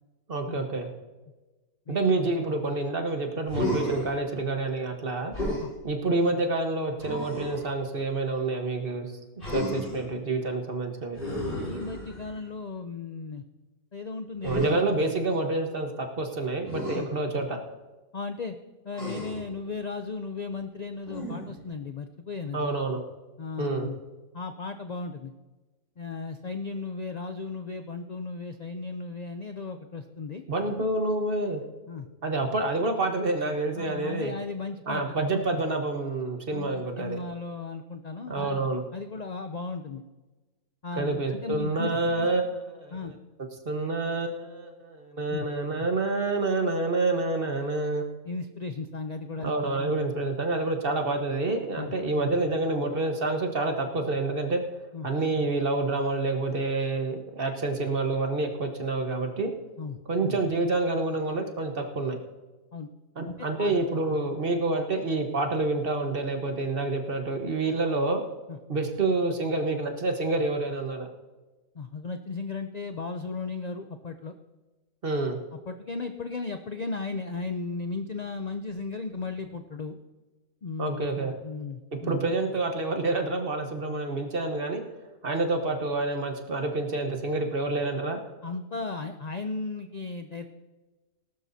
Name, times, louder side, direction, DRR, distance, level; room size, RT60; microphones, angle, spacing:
voice 1, 0.3-0.9 1.9-5.3 5.8-9.1 9.5-11.2 14.4-17.6 22.5-23.0 23.6-23.9 30.5-31.6 32.2-34.3 34.9-37.2 38.3-38.8 41.0-43.0 43.6-48.1 49.4-54.6 55.0-59.5 60.1-62.2 63.2-68.2 68.7-71.1 75.0-75.4 80.8-81.3 82.0-84.8 85.2-88.2, right 2 dB, 40° right, 4 dB, 1.4 m, -28 dB
voice 2, 1.9-2.2 5.6-5.7 11.6-13.4 13.9-14.9 16.9-17.1 18.1-18.6 18.8-22.7 23.4-24.0 24.3-25.3 26.0-30.4 31.9-32.1 33.8-35.2 36.5-38.6 38.9-40.0 40.8-41.9 42.9-43.2 45.3-45.5 48.2-49.7 51.8-51.9 54.9-55.1 59.8-60.0 62.7-62.9 63.3-63.7 68.5-68.6 71.7-74.4 75.7-80.0 80.6-81.1 81.4-82.1 88.4-90.5, left 4 dB, 65° left, 7 dB, 0.4 m, -36 dB
Human voice, 3.5-4.1 5.3-5.7 7.0-7.7 9.4-10.1 11.2-12.4 14.4-14.7 16.7-17.0 18.9-19.5 21.1-21.6, equal, 35° left, 5.7 m, -32 dB
19.0 x 12.0 x 2.7 m, 1.2 s
omnidirectional pair, 1.5 m